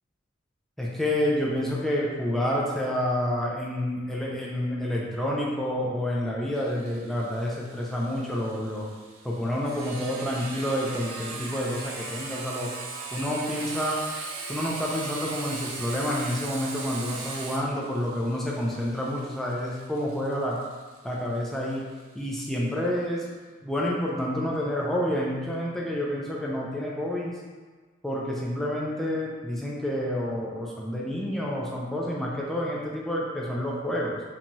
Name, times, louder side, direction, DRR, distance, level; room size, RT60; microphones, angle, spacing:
voice 1, 0.8-8.9 9.2-12.7 13.1-14.0 14.5-20.6 21.0-21.9 22.2-23.2 23.6-27.4 28.0-34.2, left 1 dB, ahead, -4 dB, 0.3 m, -29 dB
Sawing, 6.6-22.0, right 3 dB, 75° right, 0.4 m, -39 dB
2.6 x 2.3 x 2.9 m, 1.4 s
head